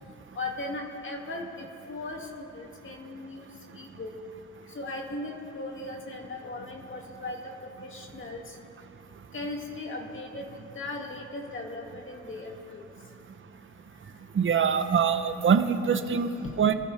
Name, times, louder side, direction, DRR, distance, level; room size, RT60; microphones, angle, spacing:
voice 1, 0.3-3.5 3.7-4.1 4.7-8.5 9.3-12.8 16.6-16.7, left 2 dB, 40° left, 0 dB, 2.6 m, -38 dB
voice 2, 14.3-16.3 16.6-16.7, right 7 dB, 40° right, 9 dB, 1.0 m, -23 dB
25.5 x 13.5 x 3.6 m, 2.9 s
cardioid pair, 90°, 30 cm